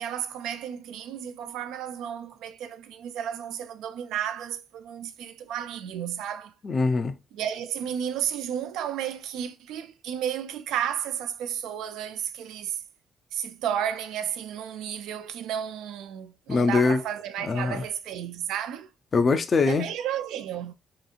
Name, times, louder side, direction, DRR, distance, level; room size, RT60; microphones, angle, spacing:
voice 1, 0.0-6.5 7.3-12.8 13.3-18.9 19.7-20.7, right 9 dB, 85° right, 0.3 m, -32 dB
voice 2, 6.6-7.2 16.5-17.0 17.4-17.8 19.1-19.9, left 4 dB, 40° left, 0.4 m, -23 dB
2.9 x 2.4 x 2.4 m
cardioid pair, 90°, 0 cm